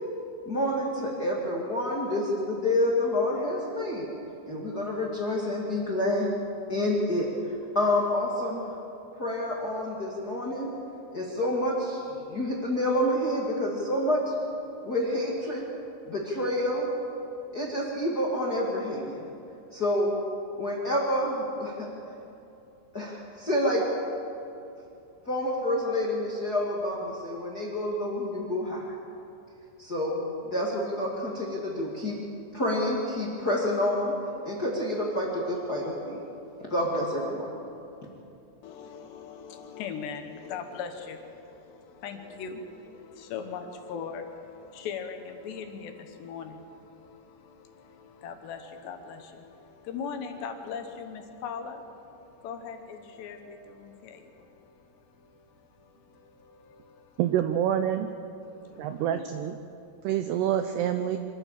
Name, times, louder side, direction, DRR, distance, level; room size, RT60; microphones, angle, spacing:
voice 1, 0.4-4.1 4.4-6.3 6.7-7.3 7.7-8.7 9.2-10.7 11.1-14.3 14.8-15.6 16.1-16.9 17.5-19.3 19.7-20.1 20.6-21.9 22.9-23.8 25.2-28.9 29.8-30.2 30.5-32.1 32.5-34.1 34.4-36.2 36.7-37.5, left 1 dB, 45° left, -3 dB, 1.2 m, -28 dB
voice 2, 38.6-57.2 58.4-59.2, left 6 dB, 70° left, 6 dB, 3.0 m, -40 dB
voice 3, 57.2-58.1 58.8-59.6 60.0-61.2, right 10 dB, 90° right, 8 dB, 2.3 m, -27 dB
25.0 x 14.0 x 7.5 m, 2.8 s
omnidirectional pair, 5.6 m